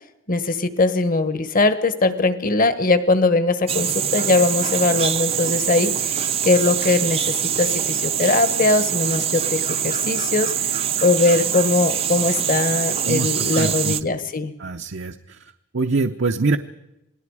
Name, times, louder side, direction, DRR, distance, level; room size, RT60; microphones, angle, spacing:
voice 1, 0.3-10.7 11.0-14.5, left 3 dB, 45° left, 11 dB, 1.4 m, -20 dB
sound 1, 3.7-14.0, right 9 dB, 30° right, 0.6 m, -24 dB
voice 2, 13.0-14.0 14.6-15.2 15.7-16.6, right 3 dB, 60° right, 5 dB, 0.7 m, -24 dB
27.5 x 19.0 x 4.9 m, 0.88 s
head